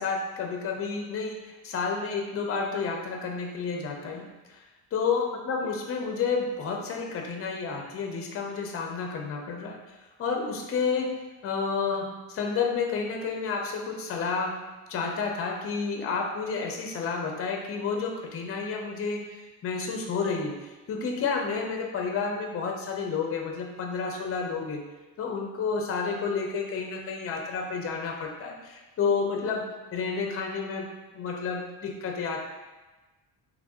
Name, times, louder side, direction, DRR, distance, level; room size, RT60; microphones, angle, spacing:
voice 1, 0.0-4.6 4.9-9.8 10.2-11.1 11.4-14.6 14.9-20.5 20.9-24.8 25.2-32.5, left 5 dB, 35° left, 2 dB, 0.6 m, -30 dB
3.3 x 2.5 x 3.5 m, 1.2 s
cardioid pair, 130°, 38 cm